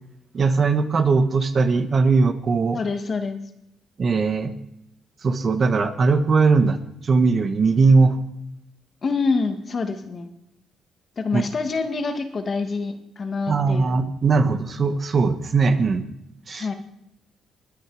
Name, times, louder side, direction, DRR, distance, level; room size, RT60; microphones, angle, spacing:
voice 1, 0.3-2.8 4.0-4.5 5.2-6.8 7.0-8.2 11.3-11.4 13.5-16.1 16.5-16.7, right 4 dB, 45° right, 10 dB, 1.3 m, -19 dB
voice 2, 2.7-3.4 9.0-10.3 11.2-14.0 16.5-16.7, left 4 dB, 40° left, 7 dB, 2.0 m, -26 dB
21.5 x 9.6 x 5.0 m, 0.80 s
cardioid pair, 90°, 0 cm